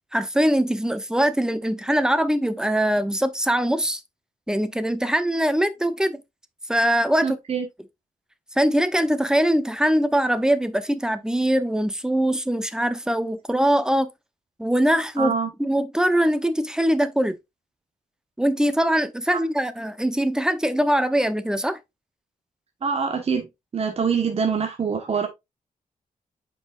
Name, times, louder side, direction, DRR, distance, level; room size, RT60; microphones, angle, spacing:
voice 1, 0.1-4.0 4.5-6.2 6.7-7.4 8.6-14.1 14.6-15.3 15.6-17.4 18.4-21.8, right 1 dB, 5° right, 0.8 m, -22 dB
voice 2, 7.2-7.7 15.2-15.5 19.3-19.4 22.8-23.5 23.7-25.3, right 6 dB, 45° right, 1.3 m, -24 dB
8.5 x 5.3 x 2.4 m
wide cardioid pair, 115°, 14 cm